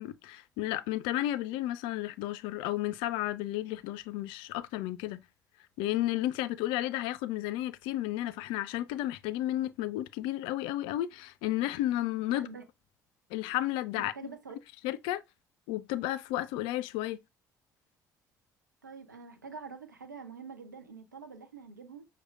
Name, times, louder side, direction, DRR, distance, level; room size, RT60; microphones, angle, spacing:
voice 1, 0.0-5.2 5.8-12.5 13.3-14.1 14.8-15.2 15.7-17.2, left 14 dB, 60° left, 0.4 m, -32 dB
voice 2, 12.3-12.6 14.0-14.6 18.8-22.1, right 5 dB, 85° right, 0.5 m, -46 dB
6.1 x 2.2 x 2.4 m
figure-of-eight pair, 55°, 10 cm